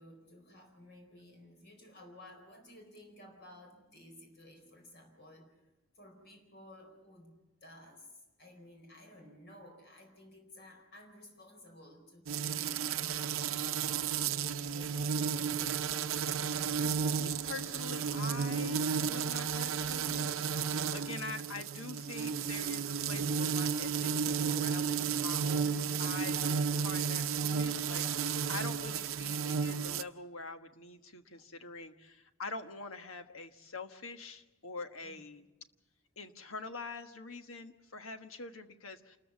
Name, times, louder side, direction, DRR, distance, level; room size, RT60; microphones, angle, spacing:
voice 1, 0.0-5.7 5.9-7.3 7.6-8.1 8.4-13.8 14.6-16.0 22.2-22.4 35.0-35.3, left 1 dB, 55° left, 3 dB, 4.5 m, -55 dB
sound 1, 12.3-30.0, right 6 dB, 85° right, 0.6 m, -33 dB
voice 2, 16.8-35.4 36.2-39.2, left 3 dB, 90° left, 7 dB, 1.3 m, -45 dB
27.5 x 14.0 x 7.2 m, 1.0 s
head